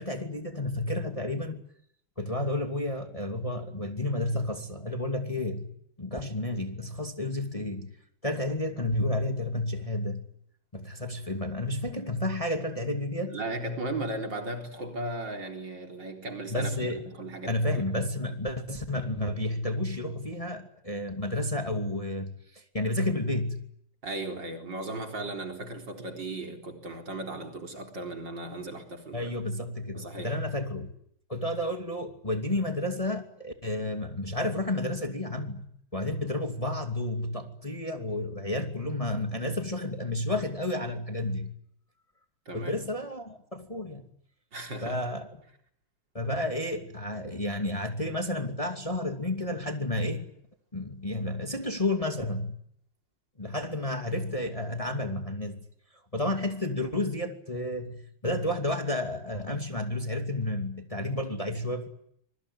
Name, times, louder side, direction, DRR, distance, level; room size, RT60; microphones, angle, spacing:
voice 1, 0.0-1.6 2.2-5.7 6.0-8.0 8.2-10.3 10.7-13.4 16.5-17.1 17.5-23.6 29.1-30.9 31.3-35.7 35.9-41.5 42.5-44.1 44.8-45.3 46.1-50.3 50.7-52.6 53.4-55.6 56.1-61.9, left 1 dB, 15° left, 2.6 m, -31 dB
voice 2, 13.3-17.8 24.0-29.3 29.9-30.3 42.5-42.7 44.5-45.0, right 2 dB, 55° right, 4.7 m, -36 dB
26.0 x 23.0 x 9.7 m
omnidirectional pair, 2.4 m